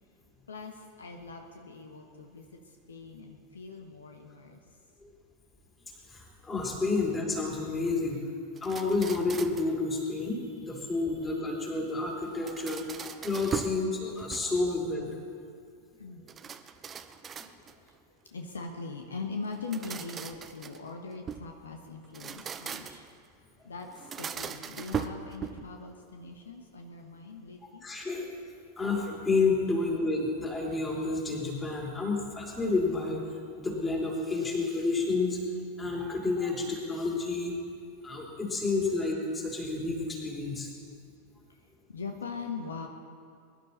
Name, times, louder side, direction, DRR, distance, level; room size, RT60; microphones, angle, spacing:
voice 1, 0.5-4.6 16.0-16.3 17.9-18.0 18.2-23.1 23.6-27.8 29.7-29.8 41.9-42.9, left 4 dB, 70° left, 4 dB, 1.1 m, -41 dB
voice 2, 6.1-8.2 8.6-15.1 27.8-28.3 28.8-33.2 33.6-35.4 35.8-37.6 38.0-40.7, left 3 dB, 15° left, -1 dB, 3.3 m, -30 dB
sound 1, 8.6-9.8 12.2-13.8 14.2-14.8 16.3-17.9 19.5-21.5 22.0-23.2 23.9-25.8, right 7 dB, 20° right, 0.7 m, -39 dB
22.0 x 11.5 x 4.3 m, 2.4 s
figure-of-eight pair, 90°, 0 cm